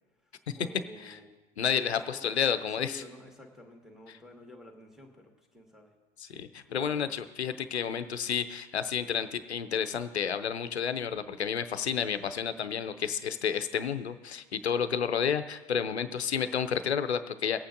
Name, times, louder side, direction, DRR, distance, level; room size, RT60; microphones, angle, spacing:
voice 1, 0.5-1.3 2.1-5.9 6.7-7.1, left 1 dB, ahead, 2 dB, 1.8 m, -51 dB
voice 2, 1.6-3.0 4.1-4.2 6.2-17.6, left 7 dB, 85° left, 11 dB, 0.6 m, -31 dB
23.5 x 8.7 x 2.6 m, 1.2 s
figure-of-eight pair, 80°, 32 cm